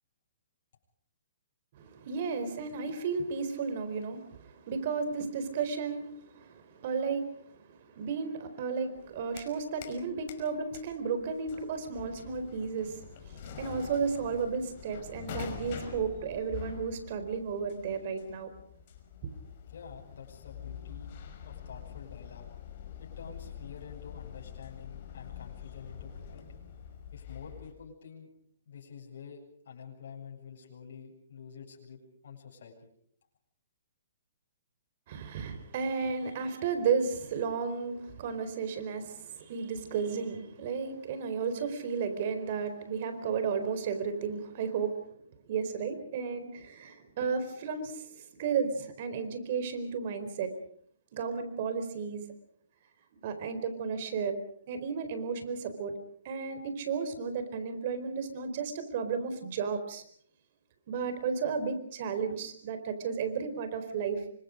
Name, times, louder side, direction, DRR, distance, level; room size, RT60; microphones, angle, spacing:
voice 1, 1.7-18.5 19.2-19.3 35.1-45.2 45.5-50.6 51.1-52.3 53.1-54.3 54.7-55.9 56.2-60.0 60.9-64.2, right 5 dB, 45° right, 9 dB, 4.3 m, -33 dB
sound 1, 9.0-10.0 10.3-27.7, left 8 dB, 40° left, 5.4 m, -45 dB
voice 2, 19.7-21.1 21.4-22.5 23.0-26.6 27.1-28.3 28.7-32.9, left 6 dB, 65° left, -1 dB, 7.7 m, -48 dB
28.5 x 25.0 x 5.2 m, 0.62 s
hypercardioid pair, 155°, 0 cm